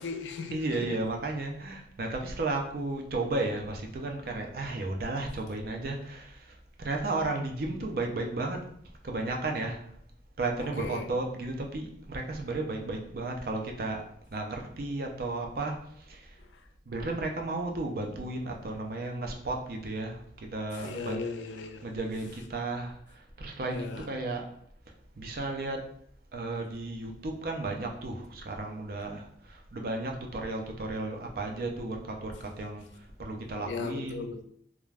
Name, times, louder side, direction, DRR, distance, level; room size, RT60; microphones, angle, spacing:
voice 1, 0.0-1.0 10.8-11.1 16.4-16.6 20.7-21.9 23.7-24.1 33.6-34.4, left 4 dB, 90° left, 0.4 m, -37 dB
voice 2, 0.5-8.7 9.0-9.8 10.4-14.1 14.3-16.4 16.9-21.3 21.8-24.5 25.2-25.9 26.3-34.3, right 2 dB, 55° right, 0.4 m, -34 dB
2.3 x 2.2 x 3.2 m
head